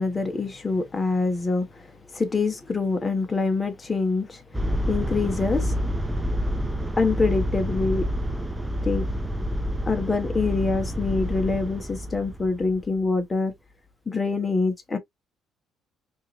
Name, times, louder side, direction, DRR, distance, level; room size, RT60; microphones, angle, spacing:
voice 1, 0.0-1.8 2.1-4.4 4.9-5.7 7.0-8.1 8.8-9.1 9.9-13.5 14.1-15.0, left 3 dB, 20° left, 1.0 m, -25 dB
sound 1, 4.5-12.9, equal, 5° right, 0.6 m, -28 dB
4.5 x 3.0 x 2.5 m
cardioid pair, 125°, 0 cm